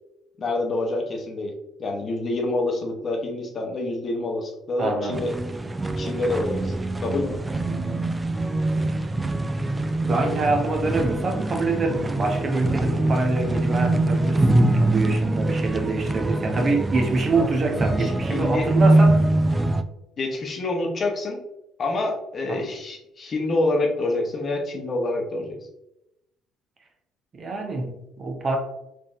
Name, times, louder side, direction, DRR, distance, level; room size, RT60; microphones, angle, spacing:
voice 1, 0.4-1.5 1.8-5.3 6.0-6.7 7.0-7.4 18.0-18.7 18.9-19.0 20.2-21.4 21.8-25.6, left 2 dB, 45° left, 1 dB, 0.7 m, -27 dB
voice 2, 4.8-5.2 10.1-14.4 14.7-19.3 22.5-22.7 27.3-28.6, right 3 dB, 40° right, 2 dB, 0.8 m, -25 dB
sound 1, 5.1-19.8, right 2 dB, 20° right, 0.3 m, -23 dB
3.8 x 2.5 x 2.5 m, 0.85 s
hypercardioid pair, 55°, 0 cm